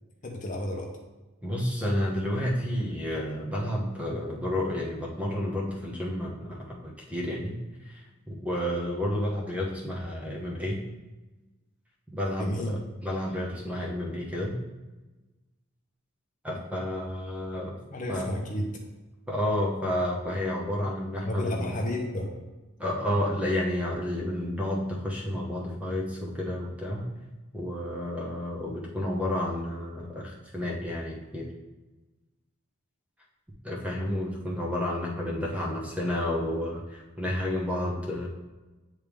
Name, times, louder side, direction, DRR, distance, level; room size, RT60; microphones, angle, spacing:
voice 1, 0.2-0.9 12.4-12.8 17.9-18.8 21.2-22.3, left 1 dB, 35° left, 1 dB, 0.7 m, -31 dB
voice 2, 1.4-7.6 7.8-10.8 12.1-14.5 16.4-17.8 18.1-18.3 19.3-21.8 22.8-27.0 27.5-31.5 33.6-38.3, left 1 dB, 5° right, -3 dB, 0.9 m, -31 dB
8.7 x 3.3 x 3.5 m, 1.1 s
head